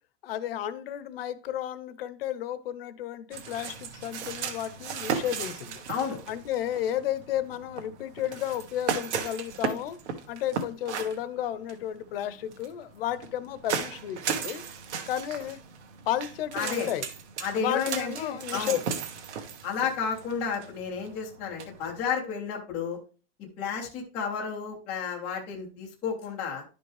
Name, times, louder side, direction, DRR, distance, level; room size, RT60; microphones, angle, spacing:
voice 1, 0.2-5.8 6.3-10.0 10.3-14.6 15.1-15.6 16.1-17.1 17.5-18.8, left 11 dB, 50° left, 0.7 m, -32 dB
sound 1, 3.3-22.0, right 7 dB, 65° right, 1.4 m, -36 dB
voice 2, 5.9-6.2 16.5-16.9 17.4-18.8 19.6-23.0 23.4-26.6, left 6 dB, 5° left, 0.3 m, -32 dB
10.5 x 5.2 x 3.2 m
supercardioid pair, 160°, 37 cm